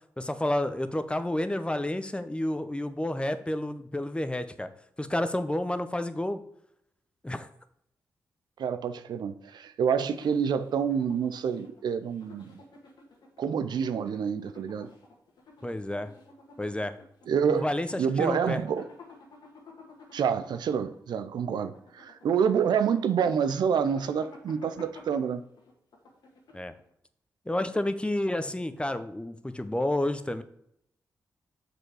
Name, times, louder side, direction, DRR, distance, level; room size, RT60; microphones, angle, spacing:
voice 1, 0.2-4.7 5.0-6.4 7.2-7.5 15.6-16.1 16.6-17.0 17.5-18.6 26.5-26.7 27.5-30.4, left 1 dB, 15° left, 0.8 m, -30 dB
voice 2, 8.6-12.6 13.4-14.9 17.3-17.7 18.0-18.9 20.1-25.4, right 7 dB, 75° right, 0.5 m, -27 dB
sound 1, 10.0-26.9, left 3 dB, 75° left, 1.7 m, -53 dB
6.1 x 5.0 x 4.8 m
supercardioid pair, 40°, 7 cm